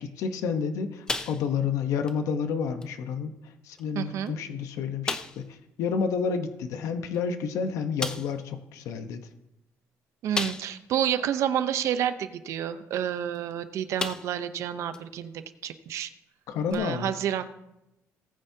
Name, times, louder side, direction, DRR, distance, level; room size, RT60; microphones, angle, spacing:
voice 1, 0.0-9.2 16.5-17.1, left 6 dB, 75° left, 8 dB, 1.0 m, -30 dB
sound 1, 1.1-1.8 2.1-2.2 2.8-2.9 3.8-3.9 4.3-4.4 5.0-5.5 7.1-7.2 8.0-8.4 10.3-10.9 11.4-11.5 13.3-13.5 14.0-14.5 14.9-15.0 16.7-16.8, left 3 dB, 15° left, 0.6 m, -33 dB
voice 2, 3.9-4.3 10.2-15.3 15.6-16.1 16.7-17.5, right 10 dB, 65° right, 11 dB, 0.7 m, -29 dB
19.0 x 9.3 x 2.8 m, 0.90 s
cardioid pair, 170°, 5 cm